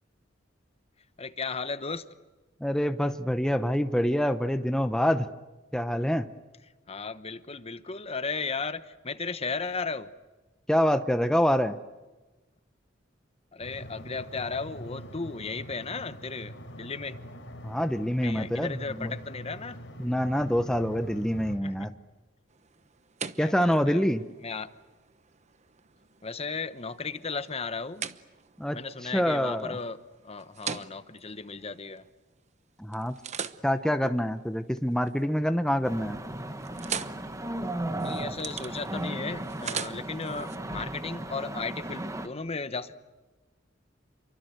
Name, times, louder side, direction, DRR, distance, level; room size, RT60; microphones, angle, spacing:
voice 1, 1.2-2.1 6.9-10.1 13.5-17.2 18.2-19.8 21.6-21.9 23.4-24.1 24.4-24.7 26.2-28.0 28.7-30.0 30.2-32.0 34.0-34.1 38.0-43.0, left 4 dB, 35° left, 13 dB, 1.0 m, -35 dB
voice 2, 2.6-5.3 5.7-6.3 10.7-11.8 17.6-19.1 20.0-21.9 23.4-24.2 28.6-29.8 32.8-33.1 33.6-36.2, equal, 5° left, 9 dB, 0.8 m, -26 dB
sound 1, 13.6-21.6, equal, 80° left, 4.0 m, -44 dB
sound 2, 22.5-32.5 32.9-35.2 35.6-36.0 36.3-40.6, right 7 dB, 40° right, 1.0 m, -42 dB
sound 3, 35.8-42.3, right 1 dB, 15° right, 1.5 m, -36 dB
28.5 x 24.0 x 8.1 m, 1.2 s
head